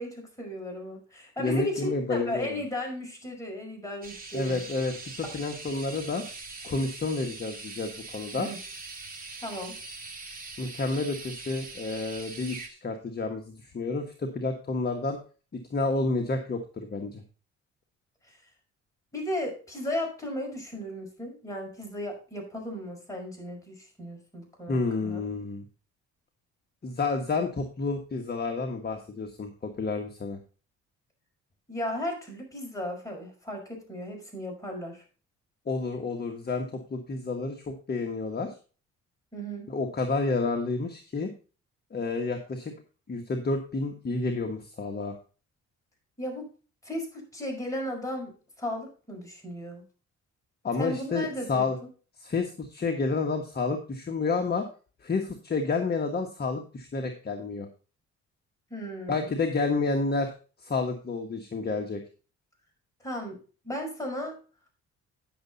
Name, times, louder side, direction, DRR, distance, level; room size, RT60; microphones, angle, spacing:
voice 1, 0.0-4.6 5.2-5.3 8.4-8.6 9.4-9.7 18.2-18.4 19.1-25.2 31.7-35.0 39.3-39.7 46.2-46.5 46.8-49.8 50.8-51.7 58.7-59.3 63.0-63.4 63.6-64.4, equal, 10° left, 0 dB, 5.7 m, -35 dB
voice 2, 1.4-2.6 4.3-6.2 6.6-8.5 10.6-15.2 15.7-17.2 24.7-25.7 26.8-30.4 35.7-38.5 39.7-41.3 41.9-42.7 43.1-45.2 50.6-51.8 52.2-54.7 55.0-57.7 59.1-60.3 60.6-62.0, left 3 dB, 30° left, 4 dB, 1.4 m, -30 dB
sound 1, 4.0-12.7, right 3 dB, 30° right, 2.4 m, -42 dB
10.0 x 6.8 x 4.1 m, 0.36 s
cardioid pair, 90°, 30 cm